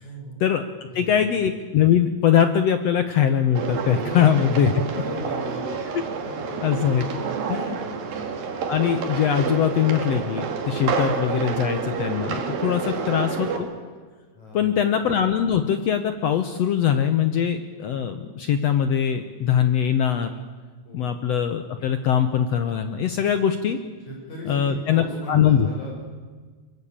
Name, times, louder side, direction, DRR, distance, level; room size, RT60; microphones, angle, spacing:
voice 1, 0.0-0.4 0.8-1.2 4.0-4.4 4.9-5.9 6.2-6.8 7.7-8.0 12.7-12.9 14.3-14.8 20.9-21.1 24.1-26.0, equal, 55° left, -1 dB, 7.2 m, -37 dB
voice 2, 0.9-4.7 6.6-7.2 7.5-7.8 8.7-13.7 14.5-20.4 20.9-23.8 24.5-25.7, left 9 dB, 70° left, 9 dB, 1.6 m, -22 dB
sound 1, 3.6-13.6, right 5 dB, 80° right, 4.0 m, -29 dB
23.0 x 21.5 x 8.7 m, 1.4 s
omnidirectional pair, 4.0 m